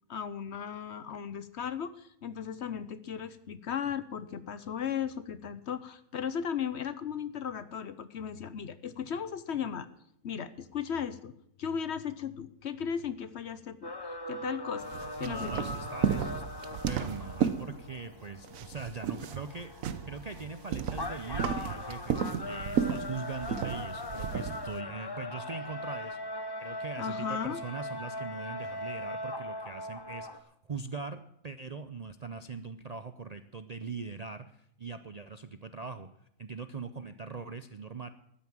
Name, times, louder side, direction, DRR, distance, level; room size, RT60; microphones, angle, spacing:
voice 1, 0.1-9.9 10.2-11.3 11.6-13.9 14.3-14.8 15.2-15.7 27.0-27.6, left 8 dB, 60° left, 14 dB, 1.0 m, -36 dB
sound 1, 13.8-30.4, left 2 dB, 20° left, 0.7 m, -40 dB
sound 2, 14.8-18.2 18.4-24.8, right 8 dB, 75° right, 1.2 m, -33 dB
voice 2, 15.2-19.7 20.1-26.2 26.6-38.1, right 4 dB, 45° right, 10 dB, 0.5 m, -41 dB
12.5 x 9.6 x 7.4 m, 0.74 s
omnidirectional pair, 1.4 m